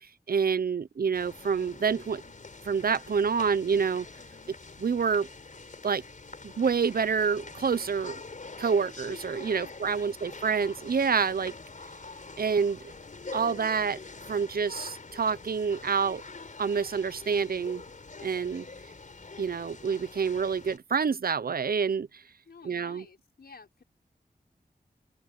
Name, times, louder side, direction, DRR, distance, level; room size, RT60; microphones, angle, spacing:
voice 1, 0.3-2.2 2.6-4.1 4.8-5.3 5.8-6.0 6.4-8.2 8.6-11.5 12.4-12.8 13.3-14.0 14.3-16.2 16.6-17.8 18.2-18.7 19.4-22.2 22.7-23.0, right 6 dB, 70° right, 0.7 m, -27 dB
sound 1, 1.1-20.8, left 3 dB, 55° left, 4.6 m, -45 dB
voice 2, 4.2-4.6 9.5-10.2 22.5-23.8, left 4 dB, 80° left, 5.2 m, -53 dB
wide cardioid pair, 95°, 16 cm